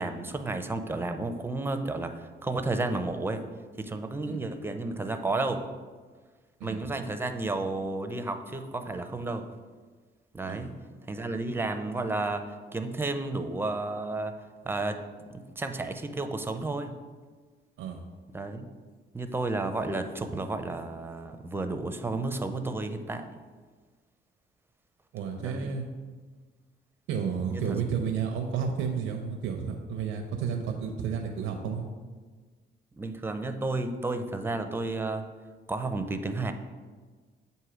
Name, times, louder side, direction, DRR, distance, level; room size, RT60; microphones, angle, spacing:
voice 1, 0.0-3.4 3.8-5.6 6.6-9.5 10.3-10.7 11.1-14.4 14.6-15.0 15.3-16.9 18.3-18.7 19.1-23.3 25.4-25.8 27.5-27.8 33.0-35.3 35.7-36.5, right 2 dB, 10° right, 7 dB, 0.5 m, -32 dB
voice 2, 25.1-25.9 27.1-31.8, right 6 dB, 85° right, 3 dB, 0.5 m, -31 dB
7.7 x 2.7 x 4.9 m, 1.4 s
cardioid pair, 90°, 20 cm